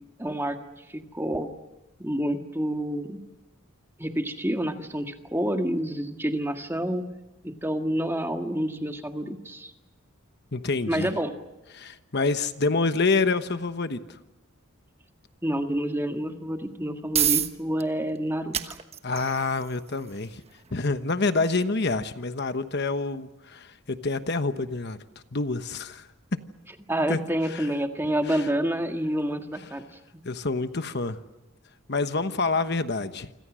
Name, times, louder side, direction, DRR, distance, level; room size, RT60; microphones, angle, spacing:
voice 1, 0.2-0.6 0.9-1.5 2.0-3.2 4.0-7.0 7.4-9.7 10.9-11.3 15.4-18.8 26.9-29.8, equal, 10° right, 5 dB, 1.8 m, -28 dB
voice 2, 10.5-11.1 11.7-14.2 19.0-20.4 20.7-25.0 25.3-26.4 27.1-27.2 27.4-27.7 28.2-28.5 30.2-31.2 31.9-33.3, left 3 dB, 50° left, 10 dB, 1.1 m, -27 dB
sound 1, 16.6-31.5, right 9 dB, 30° right, 1.2 m, -36 dB
28.5 x 26.0 x 6.3 m, 1.0 s
head